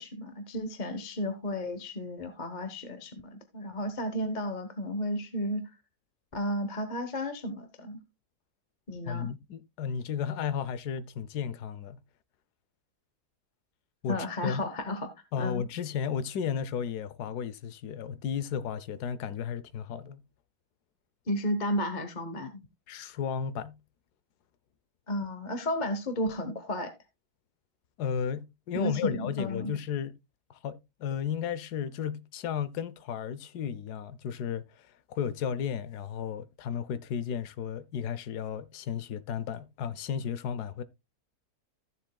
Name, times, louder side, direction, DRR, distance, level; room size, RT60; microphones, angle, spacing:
voice 1, 0.0-5.7 6.3-8.0 8.9-9.3 14.1-15.1 15.4-15.6 21.3-22.6 25.1-26.9 28.7-29.8, left 1 dB, 30° left, 1.1 m, -33 dB
voice 2, 9.1-12.0 14.0-14.6 15.3-20.2 22.9-23.8 28.0-30.1 30.5-40.8, left 7 dB, 80° left, 1.3 m, -34 dB
15.0 x 7.4 x 2.2 m
omnidirectional pair, 1.7 m